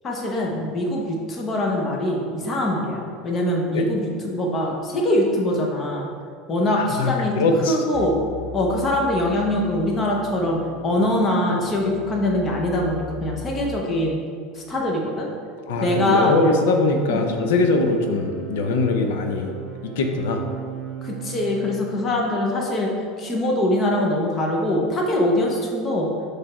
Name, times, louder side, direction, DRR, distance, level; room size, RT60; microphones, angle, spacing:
voice 1, 0.0-6.1 6.5-7.4 7.7-8.2 8.5-10.6 10.8-14.2 14.5-15.3 15.8-16.4 17.1-17.2 21.0-22.9 23.2-26.1, left 1 dB, 20° left, -1 dB, 0.8 m, -23 dB
voice 2, 7.0-7.8 15.7-19.5 19.8-20.4, left 3 dB, 90° left, 4 dB, 0.6 m, -21 dB
sound 1, 7.9-13.9 15.8-21.9, right 4 dB, 15° right, 0.5 m, -37 dB
7.0 x 3.3 x 4.4 m, 2.1 s
cardioid pair, 175°, 0 cm